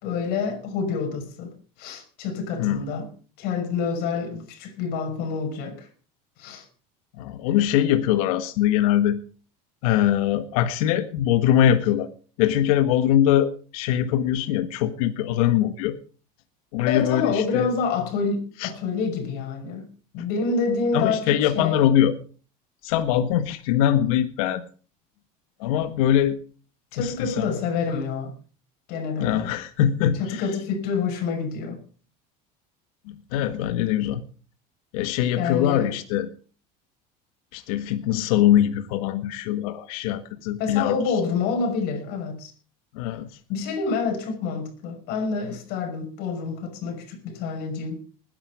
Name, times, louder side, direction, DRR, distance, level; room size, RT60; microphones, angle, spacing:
voice 1, 0.0-1.5 1.8-3.1 3.4-5.9 6.4-6.7 16.9-19.9 20.1-21.8 26.9-28.3 28.9-29.5 30.2-31.8 35.3-35.9 40.6-42.5 43.5-48.0, left 5 dB, 65° left, 5.6 m, -27 dB
voice 2, 2.6-2.9 7.1-9.2 9.8-12.1 12.4-16.0 16.7-17.7 18.6-18.7 20.9-22.1 22.8-24.6 25.6-26.4 27.0-27.5 29.2-30.5 33.1-34.2 34.9-36.3 37.5-41.1 42.9-43.3, left 11 dB, 85° left, 1.6 m, -22 dB
20.0 x 11.0 x 4.9 m
supercardioid pair, 130°, 18 cm